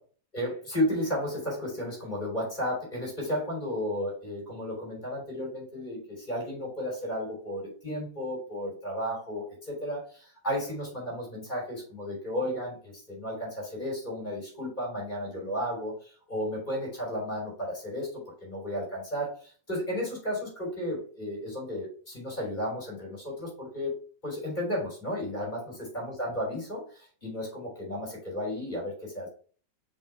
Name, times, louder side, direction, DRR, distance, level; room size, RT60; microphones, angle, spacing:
voice 1, 0.3-23.9 24.2-29.3, equal, 25° left, -2 dB, 3.4 m, -33 dB
5.4 x 5.0 x 3.4 m, 0.42 s
omnidirectional pair, 1.8 m